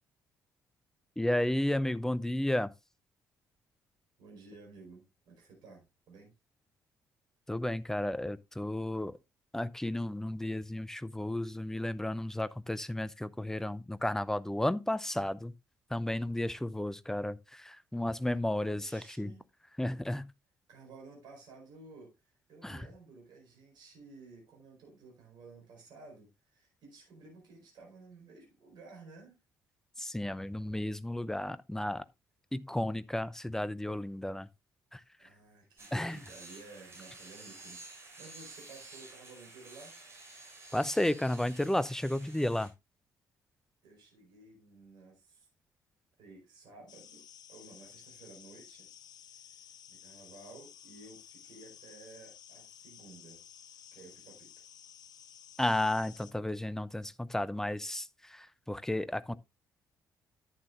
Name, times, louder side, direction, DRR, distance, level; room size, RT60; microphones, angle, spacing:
voice 1, 1.2-2.7 7.5-9.2 9.5-15.5 15.9-19.3 19.8-20.3 22.6-22.9 30.0-32.0 32.5-34.5 34.9-35.0 35.9-36.2 40.7-42.7 55.6-59.4, left 1 dB, 5° left, 0.6 m, -33 dB
voice 2, 4.2-6.3 18.7-19.4 20.7-29.4 35.2-40.0 43.8-45.5 46.2-47.2 47.5-48.9 49.3-53.4 53.9-54.5 59.3-59.4, right 3 dB, 55° right, 4.7 m, -54 dB
sound 1, 35.8-42.7, right 2 dB, 30° right, 6.4 m, -51 dB
sound 2, 46.9-56.3, left 9 dB, 50° left, 0.6 m, -54 dB
11.0 x 9.2 x 2.5 m
figure-of-eight pair, 45°, 9 cm